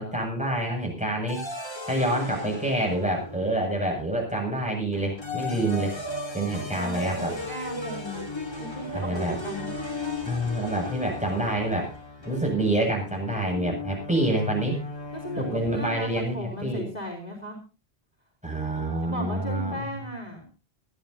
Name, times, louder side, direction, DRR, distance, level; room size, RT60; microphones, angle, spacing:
voice 1, 0.0-1.4 1.9-5.9 6.3-7.3 8.9-9.4 10.2-11.9 12.2-14.8 15.4-16.9 18.4-19.8, right 1 dB, 5° right, -1 dB, 7.5 m, -27 dB
sound 1, 1.3-3.9 4.9-16.0, left 2 dB, 25° left, 3.4 m, -36 dB
voice 2, 6.7-8.3 8.6-9.7 15.1-17.6 19.0-20.5, left 1 dB, 40° left, 0 dB, 4.2 m, -36 dB
21.5 x 14.0 x 2.9 m, 0.32 s
omnidirectional pair, 1.1 m